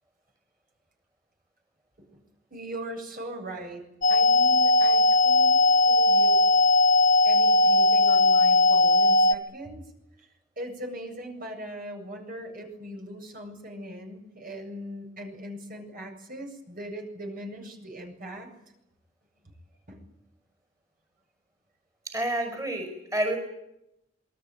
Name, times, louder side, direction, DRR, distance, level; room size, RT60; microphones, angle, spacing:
voice 1, 2.5-3.8 4.1-6.4 7.2-9.8 10.2-10.3 10.6-18.5 19.9-20.0, right 1 dB, 45° right, 3 dB, 8.0 m, -40 dB
sound 1, 4.0-9.3, left 2 dB, 45° left, 1.8 m, -19 dB
voice 2, 22.1-23.4, right 1 dB, 20° right, 4 dB, 5.6 m, -29 dB
27.5 x 22.5 x 9.3 m, 0.84 s
head